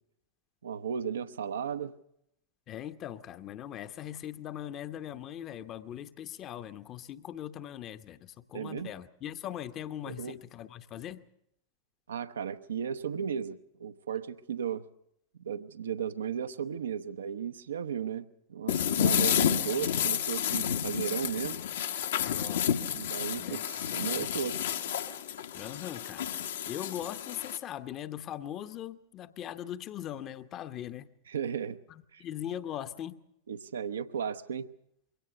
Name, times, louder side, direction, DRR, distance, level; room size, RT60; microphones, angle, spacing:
voice 1, 0.6-1.9 8.5-8.9 10.1-10.4 12.1-14.9 15.4-21.6 22.9-24.7 31.3-31.8 32.1-32.2 33.5-34.7, right 7 dB, 65° right, 10 dB, 0.8 m, -35 dB
voice 2, 2.7-11.2 22.2-22.8 23.3-23.6 24.2-24.4 25.5-31.1 31.9-33.2, left 11 dB, 35° left, 11 dB, 0.9 m, -40 dB
sound 1, 18.7-27.6, left 9 dB, 60° left, 1.2 m, -30 dB
22.5 x 17.5 x 6.7 m, 0.77 s
figure-of-eight pair, 90°, 0 cm